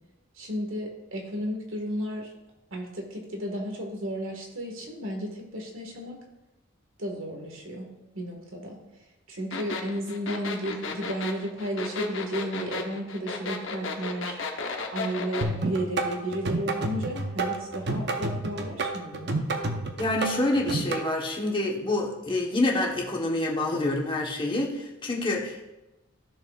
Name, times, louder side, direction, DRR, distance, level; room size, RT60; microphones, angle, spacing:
voice 1, 0.4-2.3 2.7-6.2 7.0-7.9 8.1-8.8 9.3-14.4 14.9-19.3, equal, 75° right, 1 dB, 1.8 m, -33 dB
sound 1, 9.5-15.5, left 4 dB, 65° left, 1.0 m, -33 dB
sound 2, 15.4-21.0, right 2 dB, 60° right, 0.9 m, -29 dB
voice 2, 20.0-25.7, left 2 dB, 25° left, -1 dB, 1.3 m, -27 dB
14.0 x 6.4 x 2.5 m, 1.0 s
head